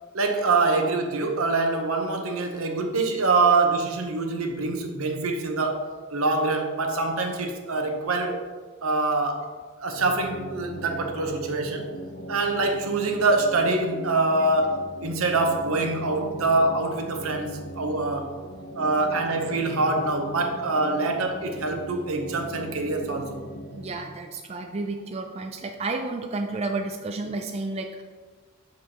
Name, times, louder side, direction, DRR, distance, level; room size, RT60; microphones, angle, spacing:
voice 1, 0.1-8.5 8.8-9.5 9.8-12.0 12.3-18.3 18.7-23.4, right 3 dB, 85° right, 4 dB, 0.9 m, -25 dB
sound 1, 9.9-23.9, equal, 55° left, 0.7 m, -40 dB
voice 2, 23.7-28.0, right 3 dB, 30° right, 4 dB, 0.3 m, -31 dB
7.2 x 6.3 x 2.9 m, 1.4 s
head